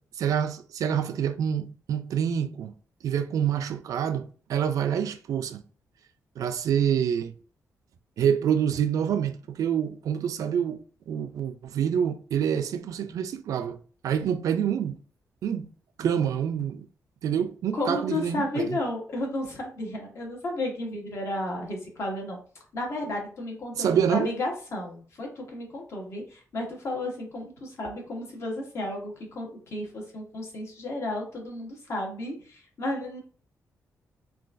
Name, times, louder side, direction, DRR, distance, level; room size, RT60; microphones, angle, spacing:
voice 1, 0.2-2.7 3.0-5.6 6.4-7.3 8.2-10.8 11.1-13.8 14.0-15.0 15.4-15.7 16.0-16.9 17.2-18.8 23.8-24.3, right 8 dB, 75° right, 0.4 m, -27 dB
voice 2, 17.7-22.4 22.7-33.2, left 1 dB, 50° left, 1.1 m, -33 dB
3.8 x 2.4 x 2.5 m
wide cardioid pair, 155°, 6 cm